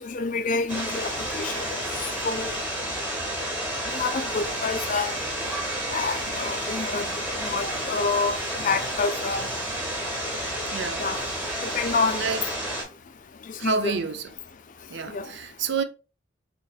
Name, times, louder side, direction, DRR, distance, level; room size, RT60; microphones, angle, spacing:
voice 1, 0.0-1.7 2.2-2.5 3.9-5.1 5.9-7.1 7.4-8.4 8.6-9.5 11.0-11.2 11.6-12.2 13.6-14.0 15.1-15.2, left 4 dB, 40° left, 0.4 m, -27 dB
sound 1, 0.7-12.8, right 1 dB, 5° right, 1.3 m, -30 dB
voice 2, 10.7-11.1 12.1-12.4 13.6-14.3 14.9-15.8, right 5 dB, 60° right, 0.5 m, -28 dB
4.0 x 3.2 x 2.3 m
head